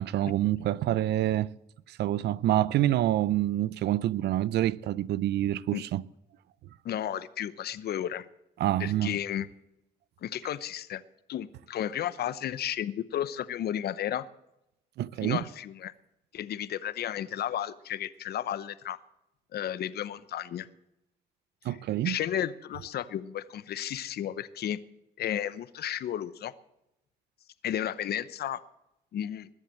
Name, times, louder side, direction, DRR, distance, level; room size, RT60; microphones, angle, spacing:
voice 1, 0.0-1.5 1.9-6.0 8.6-9.1 15.0-15.4 21.6-22.2, right 13 dB, 75° right, 0.6 m, -27 dB
voice 2, 6.8-8.3 8.8-9.5 10.2-11.0 11.3-14.3 15.2-15.9 16.3-19.0 19.5-20.7 21.7-21.8 22.0-24.8 25.2-26.5 27.6-28.6 29.1-29.5, left 10 dB, 65° left, 0.8 m, -33 dB
21.0 x 7.3 x 7.6 m
supercardioid pair, 75°, 18 cm